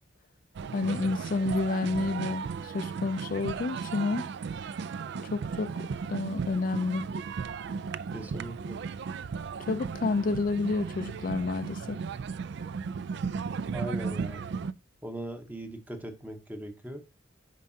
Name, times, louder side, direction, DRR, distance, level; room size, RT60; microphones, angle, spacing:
sound 1, 0.5-14.7, right 5 dB, 60° right, 0.3 m, -35 dB
voice 1, 0.7-4.3 5.3-5.7 6.1-7.1 9.7-12.0, left 3 dB, 45° left, 0.4 m, -29 dB
voice 2, 8.1-8.8 13.7-14.4 15.0-17.0, right 1 dB, 10° right, 0.9 m, -39 dB
9.2 x 5.2 x 2.7 m
head